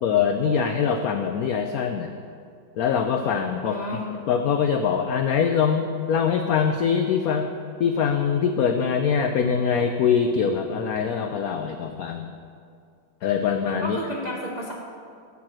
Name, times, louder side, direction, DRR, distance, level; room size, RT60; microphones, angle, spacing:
voice 1, 0.0-2.1 2.8-7.5 7.8-12.3 13.2-14.0, left 7 dB, 90° left, 6 dB, 0.7 m, -23 dB
voice 2, 3.6-4.1 13.8-14.7, equal, 45° right, -2 dB, 0.5 m, -31 dB
12.0 x 4.7 x 7.5 m, 2.3 s
omnidirectional pair, 2.1 m